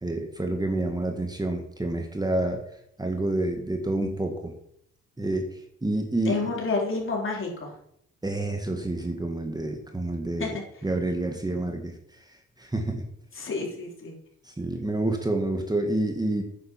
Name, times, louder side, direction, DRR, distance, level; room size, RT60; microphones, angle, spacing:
voice 1, 0.0-4.5 5.2-6.4 8.2-10.6 10.8-13.0 14.4-16.4, right 2 dB, 15° right, 4 dB, 1.8 m, -29 dB
voice 2, 6.3-7.7 10.4-10.5 13.4-14.1, left 3 dB, 45° left, -1 dB, 4.2 m, -29 dB
9.6 x 8.2 x 7.5 m, 0.72 s
cardioid pair, 90°, 30 cm